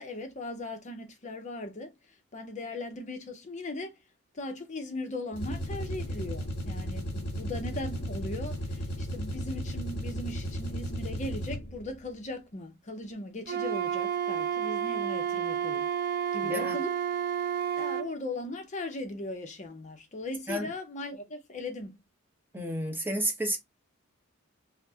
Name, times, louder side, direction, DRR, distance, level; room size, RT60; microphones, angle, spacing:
voice 1, 0.0-4.0 4.3-15.9 16.3-16.9 17.7-22.0, left 2 dB, 35° left, 0.6 m, -38 dB
sound 1, 5.3-11.9, equal, 50° left, 1.5 m, -35 dB
Wind instrument woodwind instrument, 13.5-18.1, right 9 dB, 45° right, 0.5 m, -30 dB
voice 2, 16.4-16.8 20.5-20.7 22.5-23.6, equal, 10° right, 0.8 m, -31 dB
5.6 x 2.0 x 2.7 m
head